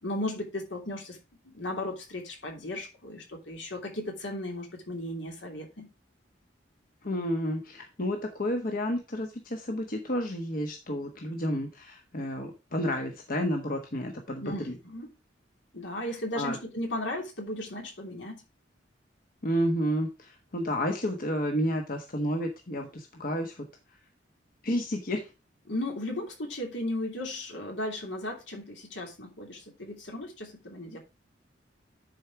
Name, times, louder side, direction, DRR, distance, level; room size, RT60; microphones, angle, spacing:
voice 1, 0.0-1.2 1.4-5.9 14.4-15.1 15.7-18.4 25.7-31.0, left 1 dB, 80° left, 3.0 m, -35 dB
voice 2, 7.0-14.7 16.3-16.6 19.4-23.7 24.6-25.3, equal, 50° left, 1.3 m, -31 dB
10.5 x 4.6 x 4.8 m
head